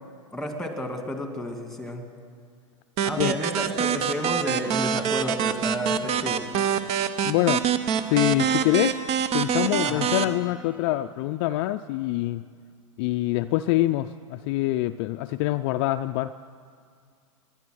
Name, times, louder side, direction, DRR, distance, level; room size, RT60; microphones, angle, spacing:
voice 1, 0.3-2.0 3.0-6.5 9.8-10.1, equal, ahead, 5 dB, 1.9 m, -31 dB
sound 1, 3.0-10.2, right 8 dB, 40° right, 0.8 m, -25 dB
voice 2, 7.2-7.6 8.1-9.0 9.3-12.4 13.0-16.4, left 16 dB, 50° left, 9 dB, 0.4 m, -25 dB
18.5 x 10.5 x 6.3 m, 2.1 s
hypercardioid pair, 115°, 17 cm